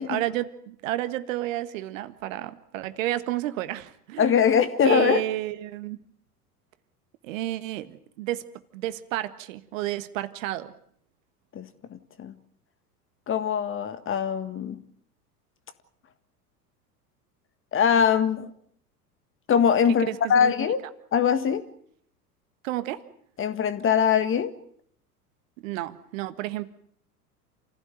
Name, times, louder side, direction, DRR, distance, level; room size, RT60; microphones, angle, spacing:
voice 1, 0.0-4.6 4.8-6.0 7.2-8.4 8.7-10.7 20.0-20.5 22.6-23.0 25.6-26.7, right 14 dB, 55° right, 1.6 m, -31 dB
voice 2, 4.2-5.2 11.5-12.3 13.3-14.8 17.7-18.5 19.5-20.8 21.1-21.6 23.4-24.5, left 7 dB, 25° left, 1.7 m, -22 dB
28.5 x 16.0 x 9.2 m
figure-of-eight pair, 80°, 47 cm